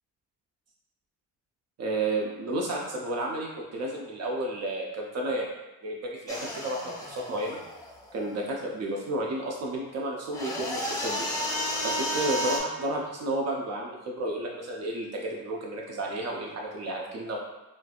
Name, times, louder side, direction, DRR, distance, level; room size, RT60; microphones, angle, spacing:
voice 1, 1.8-5.5 5.8-7.6 8.1-11.3 11.8-17.4, right 1 dB, 60° right, -2 dB, 0.5 m, -32 dB
sound 1, 6.3-8.3 10.3-12.6, equal, 10° left, 0.6 m, -32 dB
3.1 x 2.4 x 2.4 m, 1.0 s
cardioid pair, 90°, 30 cm